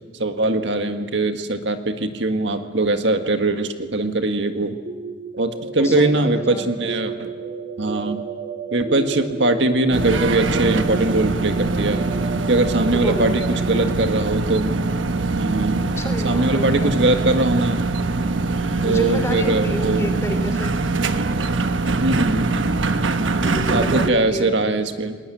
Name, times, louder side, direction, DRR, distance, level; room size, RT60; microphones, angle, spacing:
voice 1, 0.2-4.8 5.4-7.3 7.8-8.2 8.7-12.0 12.5-14.7 15.4-15.9 16.2-17.8 18.8-20.1 22.0-22.5 23.7-25.2, right 2 dB, 70° right, 7 dB, 1.8 m, -21 dB
sound 1, 4.9-16.6, right 4 dB, 45° right, 3.6 m, -34 dB
voice 2, 5.7-6.6 12.9-13.8 16.0-16.9 18.8-20.7 23.4-24.5, left 1 dB, 15° left, 6 dB, 2.9 m, -30 dB
sound 2, 9.9-24.1, right 3 dB, 90° right, 1.2 m, -23 dB
29.5 x 20.0 x 9.2 m, 1.5 s
head